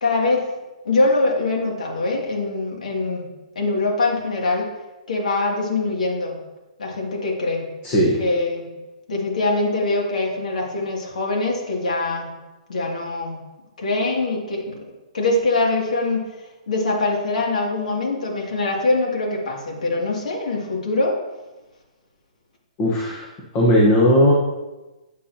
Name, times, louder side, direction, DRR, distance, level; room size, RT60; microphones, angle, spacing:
voice 1, 0.0-0.5 0.8-3.2 3.5-4.7 5.1-6.3 6.8-7.6 8.2-8.7 9.1-12.3 12.7-13.3 13.8-14.8 15.1-16.3 16.7-21.1, left 2 dB, 90° left, -1 dB, 2.5 m, -23 dB
voice 2, 7.8-8.2 22.8-23.3 23.5-24.3, equal, 25° left, -2 dB, 1.2 m, -16 dB
8.3 x 8.2 x 2.9 m, 1.1 s
hypercardioid pair, 170°, 4 cm